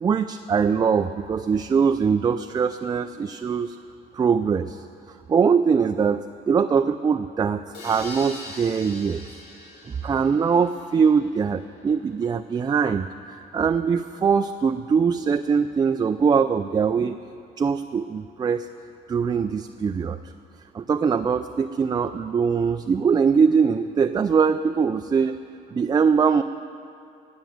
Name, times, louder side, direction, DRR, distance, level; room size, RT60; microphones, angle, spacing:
voice 1, 0.0-3.8 4.1-4.8 5.3-9.2 9.9-17.2 17.6-18.7 19.1-20.2 20.7-25.4 25.7-26.4, right 6 dB, 25° right, 8 dB, 0.4 m, -22 dB
sound 1, 7.7-11.5, left 2 dB, 80° left, 3.2 m, -42 dB
17.0 x 6.2 x 9.1 m, 2.5 s
cardioid pair, 110°, 17 cm